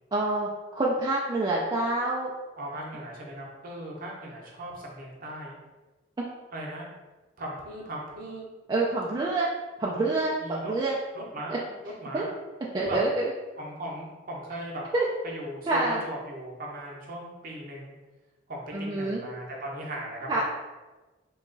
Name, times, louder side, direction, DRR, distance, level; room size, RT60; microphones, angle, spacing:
voice 1, 0.1-2.3 8.7-9.5 9.8-10.9 12.1-12.2 12.7-13.2 14.9-15.1 15.7-16.0 18.7-19.2 20.3-20.4, right 2 dB, 25° right, -5 dB, 0.3 m, -27 dB
voice 2, 2.6-5.6 6.5-6.9 7.4-8.5 10.4-10.7 11.1-12.3 12.8-13.0 13.6-14.8 15.2-17.9 18.5-20.4, right 1 dB, 45° right, -2 dB, 0.7 m, -38 dB
2.9 x 2.3 x 3.7 m, 1.2 s
head